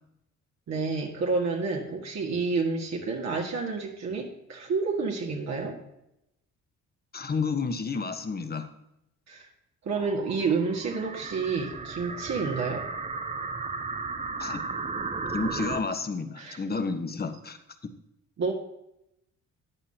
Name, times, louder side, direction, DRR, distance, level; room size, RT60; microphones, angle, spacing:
voice 1, 0.7-5.8 9.3-9.5 9.8-12.9 16.4-16.6 18.4-18.5, right 4 dB, 60° right, -1 dB, 2.0 m, -29 dB
voice 2, 7.1-8.7 14.4-14.6 15.3-17.6, left 4 dB, 30° left, 8 dB, 1.2 m, -30 dB
sound 1, 9.9-15.8, right 4 dB, 20° right, 0.7 m, -35 dB
14.5 x 9.5 x 2.9 m, 0.81 s
cardioid pair, 90°, 30 cm